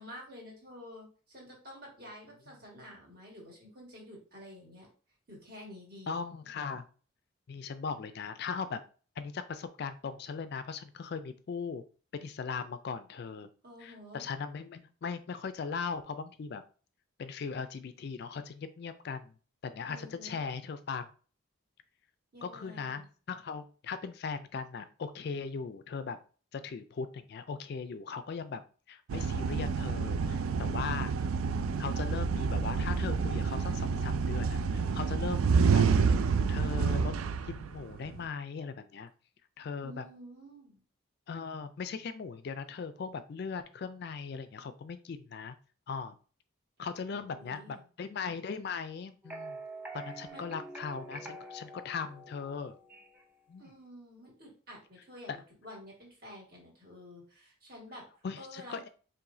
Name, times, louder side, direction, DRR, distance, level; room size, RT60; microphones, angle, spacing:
voice 1, 0.0-4.9 5.3-6.2 13.6-14.2 19.9-20.4 22.3-23.1 39.8-40.8 47.1-47.9 50.3-50.4 53.6-58.1 58.4-58.9, left 1 dB, 45° right, -2 dB, 1.7 m, -50 dB
voice 2, 6.1-6.8 7.5-8.8 9.2-11.8 12.2-13.5 13.8-16.6 17.2-19.3 19.6-21.1 22.4-23.0 23.3-26.2 26.5-31.1 31.8-35.9 36.5-37.1 37.5-39.1 39.6-40.1 41.3-45.5 45.9-46.1 46.8-49.6 49.9-52.8 53.5-53.6 55.3-55.4 58.2-58.9, left 5 dB, 50° left, 11 dB, 0.3 m, -39 dB
sound 1, 29.1-38.2, right 5 dB, 85° right, 0.3 m, -28 dB
sound 2, 49.2-53.3, right 2 dB, 10° right, 0.5 m, -46 dB
4.8 x 3.1 x 2.6 m, 0.40 s
head